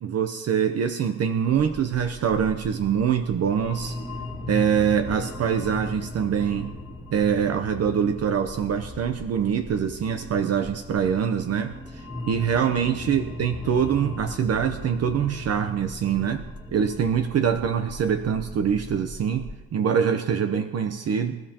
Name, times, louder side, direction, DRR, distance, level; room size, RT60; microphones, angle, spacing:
voice 1, 0.0-4.0 4.5-6.7 7.1-21.4, right 7 dB, 50° right, 7 dB, 0.9 m, -24 dB
sound 1, 1.5-19.6, left 2 dB, 10° right, 2.0 m, -38 dB
25.5 x 13.5 x 3.0 m, 1.2 s
cardioid pair, 125°, 33 cm